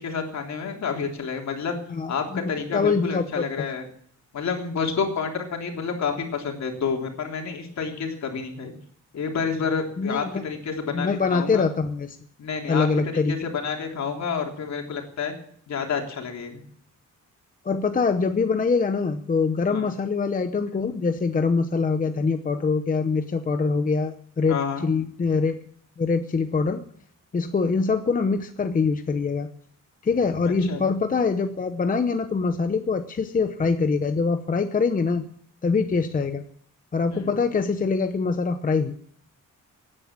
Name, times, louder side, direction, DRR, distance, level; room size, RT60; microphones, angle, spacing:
voice 1, 0.0-1.7 2.1-3.9 4.3-8.7 9.1-11.6 12.4-15.3 15.7-16.6 19.7-19.9 24.5-24.9 30.6-30.8 37.1-37.3, left 5 dB, 60° left, 3 dB, 3.5 m, -29 dB
voice 2, 1.9-3.4 10.0-10.4 10.9-12.2 12.7-13.3 17.6-25.6 26.0-26.8 27.3-29.5 30.0-35.2 35.6-36.4 36.9-38.9, left 4 dB, 25° left, 8 dB, 0.8 m, -24 dB
17.5 x 9.9 x 7.4 m, 0.62 s
wide cardioid pair, 155°, 31 cm